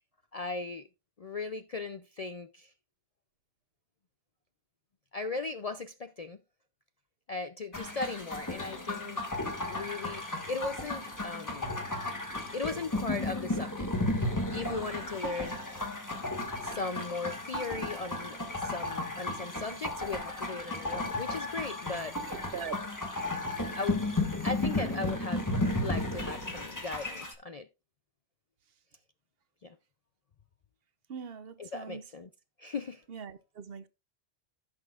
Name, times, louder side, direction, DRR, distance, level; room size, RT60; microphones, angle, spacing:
voice 1, 0.3-0.9 1.2-2.7 5.1-6.4 7.3-9.2 9.7-11.8 12.5-14.3 14.5-15.6 16.6-22.1 23.7-24.0 24.4-25.5 25.8-27.7 29.6-29.8 31.6-32.3 32.6-33.0, left 3 dB, 55° left, 0.4 m, -37 dB
sound 1, 7.7-27.3, left 2 dB, 15° left, 1.3 m, -34 dB
voice 2, 22.3-22.8 31.1-32.0 33.1-33.9, right 6 dB, 60° right, 0.8 m, -41 dB
15.5 x 6.2 x 2.4 m
omnidirectional pair, 1.2 m